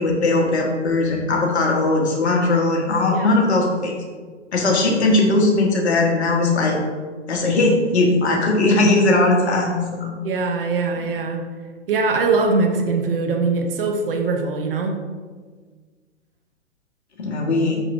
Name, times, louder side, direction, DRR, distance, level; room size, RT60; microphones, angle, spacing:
voice 1, 0.0-4.0 4.5-6.8 7.3-10.2 17.2-17.8, left 2 dB, 60° left, -1 dB, 1.5 m, -19 dB
voice 2, 10.2-11.5 11.9-14.9, right 4 dB, 50° right, 4 dB, 0.8 m, -22 dB
6.1 x 5.9 x 2.7 m, 1.5 s
figure-of-eight pair, 115°, 36 cm